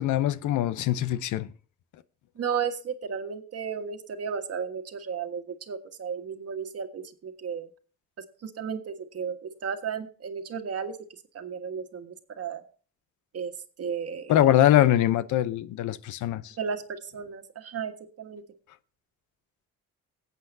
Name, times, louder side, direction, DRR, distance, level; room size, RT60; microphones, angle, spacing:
voice 1, 0.0-1.5 14.3-16.5, left 12 dB, 80° left, 0.7 m, -23 dB
voice 2, 2.4-7.7 8.2-11.0 11.3-12.6 13.3-13.5 13.8-14.3 16.6-18.4, right 6 dB, 50° right, 1.5 m, -34 dB
18.0 x 8.2 x 2.7 m
cardioid pair, 90°, 30 cm